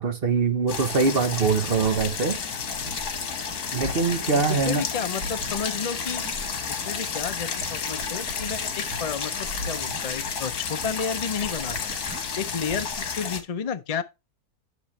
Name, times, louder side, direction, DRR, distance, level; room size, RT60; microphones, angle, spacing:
voice 1, 0.0-2.4 3.7-4.9, right 5 dB, 40° right, 1.1 m, -23 dB
sound 1, 0.7-13.4, left 6 dB, 80° left, 1.8 m, -31 dB
sound 2, 1.7-13.1, right 1 dB, 75° right, 2.1 m, -41 dB
voice 2, 4.3-6.2 6.7-11.8 12.4-14.0, left 6 dB, 55° left, 0.4 m, -31 dB
10.0 x 6.1 x 3.2 m
omnidirectional pair, 1.6 m